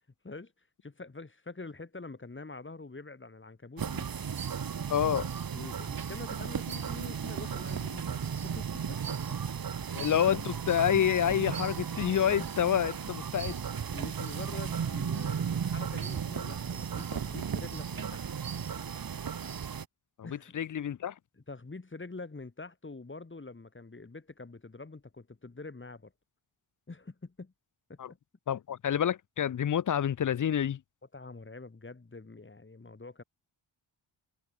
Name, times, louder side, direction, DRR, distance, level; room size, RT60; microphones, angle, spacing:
voice 1, 0.2-4.1 5.5-9.2 13.9-18.3 20.2-20.6 21.4-26.1 26.9-27.5 27.9-28.0 31.1-33.2, left 3 dB, 25° left, 2.0 m, -45 dB
sound 1, 3.8-19.8, right 7 dB, 45° right, 1.1 m, -35 dB
voice 2, 4.9-5.3 9.9-13.6 20.2-20.3 20.5-21.1 28.0-28.1 28.5-30.8, left 9 dB, 40° left, 0.5 m, -28 dB
wide cardioid pair, 85°, 50 cm